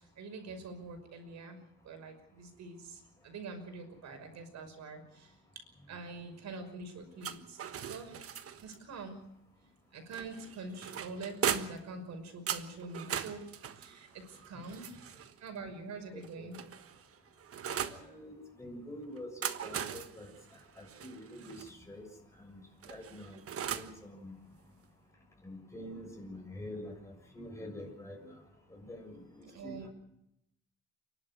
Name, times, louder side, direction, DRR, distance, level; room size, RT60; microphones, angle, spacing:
voice 1, 0.0-1.6 1.8-7.6 7.9-8.2 8.6-9.2 9.6-9.7 9.9-13.5 13.7-16.6 29.4-29.9, right 3 dB, 65° right, 6 dB, 5.8 m, -45 dB
sound 1, 7.2-8.8 10.1-11.9 12.5-15.4 16.2-18.0 19.2-21.7 22.8-24.0, right 8 dB, 50° right, 1.4 m, -39 dB
voice 2, 16.1-16.5 17.9-20.3 20.8-22.1 22.4-24.4 25.4-28.3 28.7-29.9, left 1 dB, 10° left, 1 dB, 7.3 m, -46 dB
28.5 x 12.0 x 9.6 m, 0.79 s
cardioid pair, 130°, 29 cm